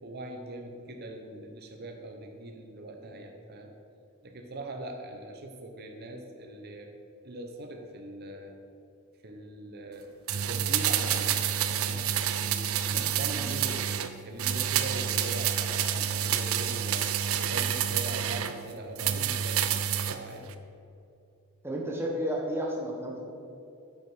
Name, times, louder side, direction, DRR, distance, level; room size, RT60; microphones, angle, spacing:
voice 1, 0.0-3.7 4.2-6.9 7.2-8.5 9.2-11.4 11.7-12.1 12.4-13.9 14.2-17.1 17.4-19.6 20.1-20.5, right 1 dB, 45° right, 3 dB, 0.9 m, -41 dB
sound 1, 10.3-14.1 14.4-18.5 19.0-20.2 20.5-20.6, right 9 dB, 75° right, 0.6 m, -28 dB
voice 2, 21.6-23.2, equal, 10° right, -1 dB, 1.4 m, -32 dB
9.3 x 8.0 x 4.9 m, 2.7 s
head